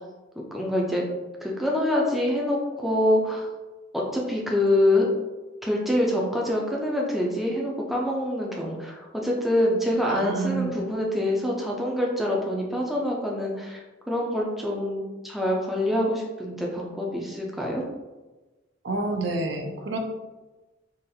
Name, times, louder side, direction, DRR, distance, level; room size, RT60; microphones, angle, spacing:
voice 1, 0.4-1.0 1.4-3.5 3.9-5.1 5.6-17.9, left 1 dB, ahead, -2 dB, 0.4 m, -25 dB
voice 2, 10.0-10.8 18.8-20.0, right 3 dB, 65° right, 3 dB, 0.5 m, -29 dB
3.9 x 2.4 x 2.7 m, 1.2 s
head